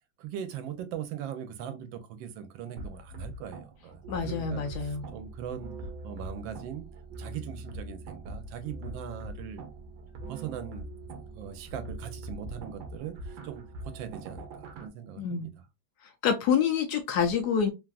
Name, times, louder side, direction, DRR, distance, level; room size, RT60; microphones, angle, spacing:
voice 1, 0.2-5.8 6.0-6.9 7.2-9.6 10.3-10.9 11.3-15.5, right 9 dB, 85° right, 1.3 m, -40 dB
sound 1, 2.8-14.9, right 2 dB, 70° right, 1.2 m, -42 dB
voice 2, 4.1-5.0 15.2-15.5 16.2-17.7, left 7 dB, 70° left, 1.0 m, -27 dB
3.4 x 2.3 x 2.3 m
omnidirectional pair, 2.0 m